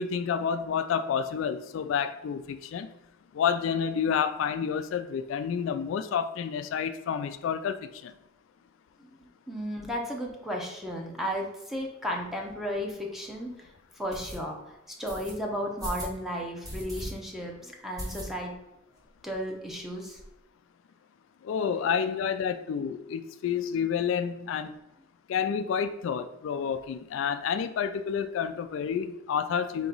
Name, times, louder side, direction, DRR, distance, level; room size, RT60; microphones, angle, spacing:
voice 1, 0.0-2.9 3.3-8.1 21.4-24.7 25.3-29.9, left 7 dB, 75° left, 11 dB, 0.3 m, -29 dB
voice 2, 9.5-13.5 14.0-14.7 15.0-18.5 19.2-20.2, equal, ahead, 0 dB, 0.7 m, -34 dB
sound 1, 12.7-12.8 13.3-13.4 14.1-14.4 15.1-15.3 15.8-16.2 16.6-17.1 17.4-17.5 18.0-18.6 19.0-19.1 19.3-19.4 19.7-20.3, equal, 20° right, 1.1 m, -38 dB
4.4 x 3.0 x 3.9 m, 0.93 s
head